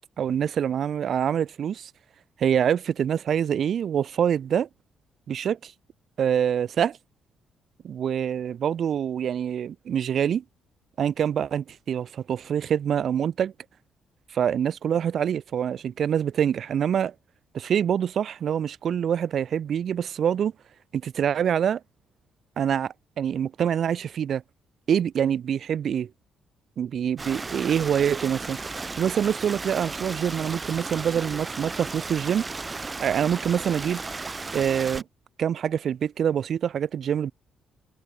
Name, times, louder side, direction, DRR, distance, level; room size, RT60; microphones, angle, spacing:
voice 1, 0.2-1.9 2.4-4.7 5.3-5.7 6.2-7.0 7.8-10.4 11.0-13.5 14.3-17.1 17.5-20.5 20.9-21.8 22.6-24.4 24.9-26.1 26.8-32.5 33.0-34.0 34.5-35.0 35.4-37.3, right 8 dB, 60° right, 0.3 m, -25 dB
Stream, 27.2-35.0, right 3 dB, 25° right, 0.6 m, -35 dB
cardioid pair, 90°, 0 cm